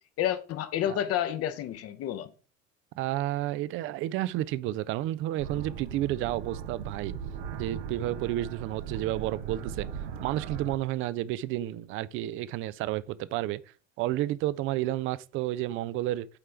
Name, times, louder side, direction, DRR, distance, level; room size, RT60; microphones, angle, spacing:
voice 1, 0.2-2.3, left 11 dB, 40° left, 0.7 m, -30 dB
voice 2, 3.0-7.1 7.6-9.9 10.2-13.6 14.0-16.3, right 14 dB, 35° right, 0.4 m, -31 dB
sound 1, 5.4-10.8, right 8 dB, 65° right, 0.8 m, -38 dB
8.6 x 4.3 x 3.3 m
figure-of-eight pair, 60°, 38 cm